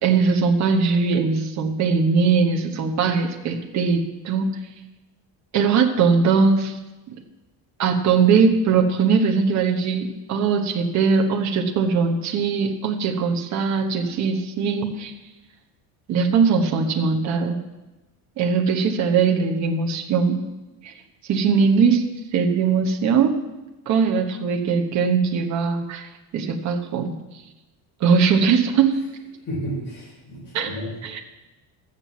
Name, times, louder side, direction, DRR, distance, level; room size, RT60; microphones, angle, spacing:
voice 1, 0.0-4.5 5.5-6.8 7.1-7.2 7.8-15.1 16.1-17.6 18.4-20.4 20.8-20.9 21.3-22.0 22.3-23.4 23.9-27.1 28.0-29.0 30.5-30.8 31.0-31.2, right 5 dB, 40° right, 4 dB, 1.1 m, -20 dB
voice 2, 29.4-30.9, equal, 25° left, -8 dB, 4.8 m, -32 dB
13.0 x 7.6 x 7.3 m, 1.0 s
cardioid pair, 175°, 42 cm